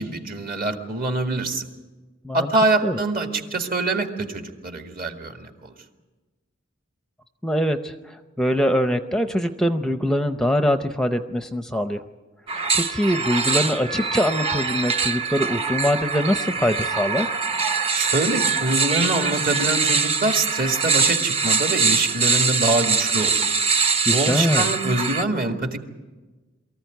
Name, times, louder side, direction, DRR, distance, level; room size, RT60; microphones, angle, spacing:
voice 1, 0.0-1.7 2.3-5.7 17.9-23.3 24.1-25.8, right 2 dB, 50° right, 5 dB, 2.0 m, -24 dB
voice 2, 7.4-12.0 12.5-17.3 24.1-24.7, equal, 5° left, 8 dB, 0.6 m, -23 dB
sound 1, 12.5-25.2, right 5 dB, 30° right, 0.8 m, -23 dB
23.5 x 14.5 x 9.3 m, 1.2 s
head